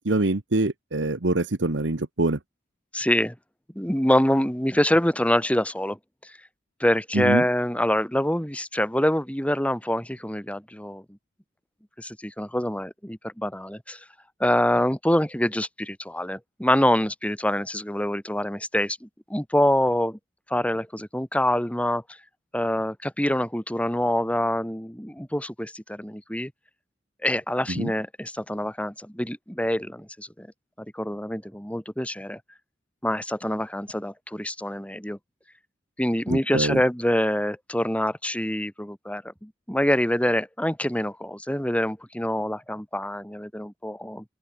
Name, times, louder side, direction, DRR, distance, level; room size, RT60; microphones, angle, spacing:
voice 1, 0.0-2.4 7.1-7.4 27.7-27.9 36.3-36.8, right 2 dB, 90° right, 1.4 m, -24 dB
voice 2, 2.9-3.4 3.8-6.3 6.8-11.0 12.0-14.0 14.4-20.2 20.5-22.0 22.5-26.5 27.2-30.5 30.9-32.4 33.0-35.2 36.0-44.2, left 1 dB, 5° left, 7.1 m, -25 dB
open air
head